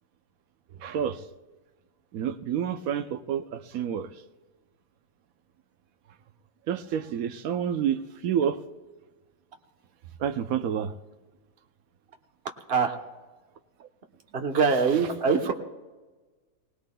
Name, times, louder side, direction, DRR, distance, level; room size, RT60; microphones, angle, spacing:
voice 1, 0.8-1.2 2.1-4.1 6.7-8.6 10.2-10.9, right 8 dB, 70° right, 9 dB, 1.1 m, -29 dB
voice 2, 14.3-15.5, right 5 dB, 45° right, 4 dB, 1.2 m, -23 dB
21.5 x 18.5 x 2.2 m, 1.3 s
omnidirectional pair, 1.6 m